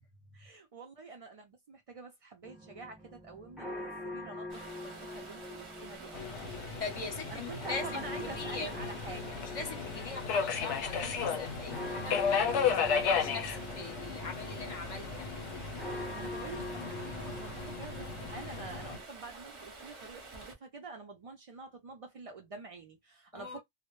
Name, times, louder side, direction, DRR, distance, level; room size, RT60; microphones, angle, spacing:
voice 1, 0.3-6.6 7.3-9.4 16.1-23.6, right 3 dB, 65° right, 0.3 m, -47 dB
sound 1, 2.4-19.0, left 1 dB, ahead, 0.8 m, -45 dB
Stream, 4.5-20.5, right 3 dB, 30° right, 0.6 m, -49 dB
Subway metro underground, 6.1-19.0, left 6 dB, 90° left, 0.9 m, -35 dB
voice 2, 6.8-8.7 9.5-15.3 23.3-23.6, left 4 dB, 40° left, 0.6 m, -42 dB
2.0 x 2.0 x 2.9 m
omnidirectional pair, 1.2 m